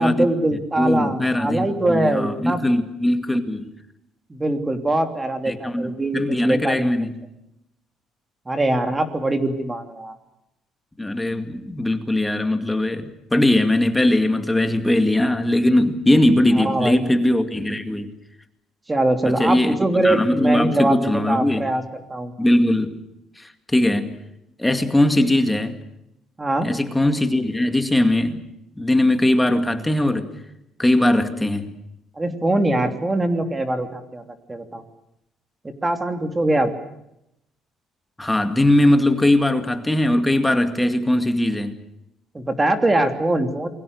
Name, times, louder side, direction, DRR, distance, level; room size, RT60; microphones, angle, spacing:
voice 1, 0.0-2.6 4.3-6.9 8.5-10.1 16.5-17.2 18.9-21.8 22.1-22.3 26.4-26.7 32.2-34.2 34.5-34.8 35.8-36.7 42.3-43.7, right 1 dB, 15° right, 3.0 m, -22 dB
voice 2, 0.8-3.7 5.5-7.1 11.0-18.1 19.2-21.7 22.4-23.0 23.4-24.2 24.6-25.8 26.6-28.4 28.8-30.3 30.8-31.7 38.2-41.8, left 1 dB, 10° left, 2.2 m, -20 dB
28.5 x 22.5 x 6.7 m
cardioid pair, 140°, 0 cm